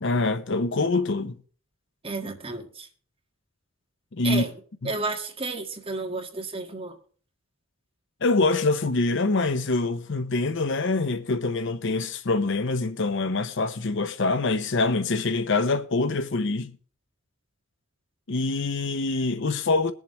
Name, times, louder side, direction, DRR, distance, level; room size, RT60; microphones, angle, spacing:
voice 1, 0.0-1.4 4.1-4.4 4.8-4.9 8.2-16.7 18.3-19.9, left 3 dB, 60° left, 0.7 m, -25 dB
voice 2, 2.0-2.9 4.2-4.5 4.9-7.0, right 3 dB, 25° right, 1.7 m, -32 dB
21.5 x 7.3 x 3.0 m
head